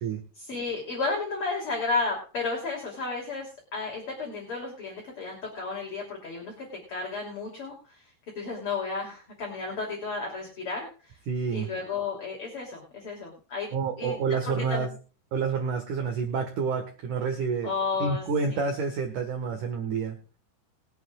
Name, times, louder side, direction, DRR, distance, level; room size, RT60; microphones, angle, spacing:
voice 1, 0.4-8.0 8.4-11.2 11.5-13.7 14.0-14.2 14.5-14.9 17.6-18.2 18.5-18.7, left 4 dB, 35° left, -1 dB, 3.3 m, -33 dB
voice 2, 11.3-11.7 13.7-14.9 15.3-17.7 18.0-20.2, right 5 dB, 60° right, 4 dB, 2.4 m, -28 dB
22.5 x 8.3 x 2.4 m, 0.39 s
omnidirectional pair, 5.3 m